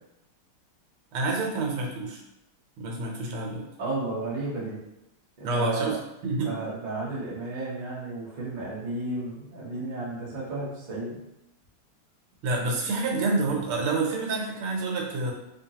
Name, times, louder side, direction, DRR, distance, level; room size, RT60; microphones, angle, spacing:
voice 1, 1.1-2.2 2.8-3.7 5.4-6.6 12.4-15.3, right 3 dB, 90° right, 0 dB, 1.7 m, -28 dB
voice 2, 3.8-4.8 5.4-5.9 6.4-11.2, right 2 dB, 70° right, -6 dB, 0.4 m, -33 dB
4.2 x 2.8 x 2.8 m, 0.89 s
omnidirectional pair, 2.3 m